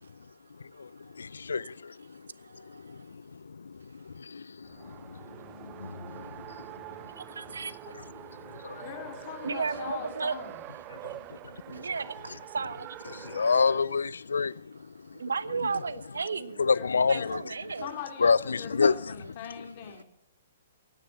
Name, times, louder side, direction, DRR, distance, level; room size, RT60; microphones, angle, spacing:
voice 1, 1.2-1.9 2.8-3.2 3.5-3.8 4.1-5.2 5.6-6.5 8.6-8.8 10.9-11.0 11.7-11.8 13.1-14.7 16.6-17.4 18.2-18.9, left 5 dB, 75° left, 0.4 m, -28 dB
voice 2, 2.4-3.0 7.2-7.7 9.4-10.4 11.7-13.5 15.1-17.9, right 5 dB, 75° right, 0.8 m, -35 dB
Race car auto racing, 4.6-13.9, right 15 dB, 30° right, 0.5 m, -45 dB
voice 3, 8.8-10.6 16.7-17.3 17.8-20.0, left 9 dB, 45° left, 2.9 m, -41 dB
16.5 x 9.6 x 5.7 m
figure-of-eight pair, 120°, 0 cm